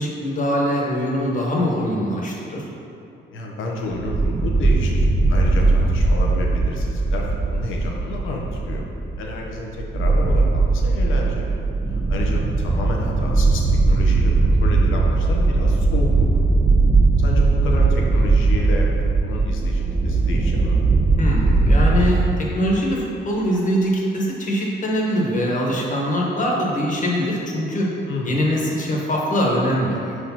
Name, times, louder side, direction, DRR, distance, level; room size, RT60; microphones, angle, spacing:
voice 1, 0.0-2.7 21.2-27.9 28.2-30.2, equal, 40° left, -2 dB, 1.5 m, -22 dB
voice 2, 3.3-8.8 9.2-11.5 12.1-16.4 17.2-18.9 19.2-20.8 28.1-28.3, left 2 dB, 80° left, -1 dB, 1.1 m, -30 dB
sound 1, 4.0-22.1, right 3 dB, 30° right, 1.3 m, -19 dB
5.0 x 4.8 x 5.8 m, 2.7 s
cardioid pair, 90°, 20 cm